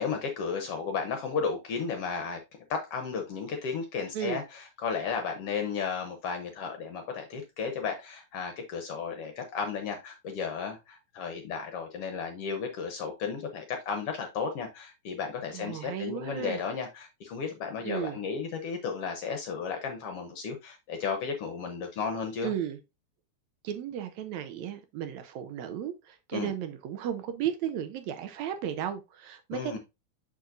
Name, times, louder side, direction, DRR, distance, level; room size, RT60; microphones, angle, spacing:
voice 1, 0.0-2.4 2.7-22.5 26.3-26.5 29.5-29.8, left 5 dB, 65° left, 1.6 m, -34 dB
voice 2, 15.5-16.6 17.8-18.2 22.4-22.8 23.6-29.8, right 9 dB, 75° right, 1.9 m, -34 dB
6.5 x 6.1 x 2.5 m
omnidirectional pair, 3.4 m